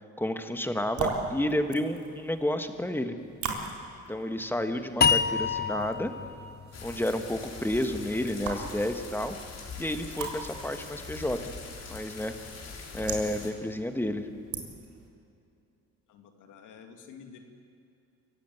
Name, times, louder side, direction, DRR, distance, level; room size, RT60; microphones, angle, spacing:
voice 1, 0.2-3.2 4.1-6.1 6.8-9.4 9.8-11.5 11.9-12.3 12.9-14.3, left 1 dB, 5° left, 7 dB, 1.7 m, -31 dB
sound 1, 0.7-15.1, right 4 dB, 70° right, 3.8 m, -41 dB
sound 2, 5.0-8.2, left 6 dB, 35° left, 0.8 m, -28 dB
sound 3, 6.7-13.5, left 4 dB, 55° left, 4.0 m, -43 dB
voice 2, 16.1-17.4, left 7 dB, 85° left, 5 dB, 2.3 m, -49 dB
24.0 x 16.0 x 9.2 m, 2.6 s
cardioid pair, 90°, 30 cm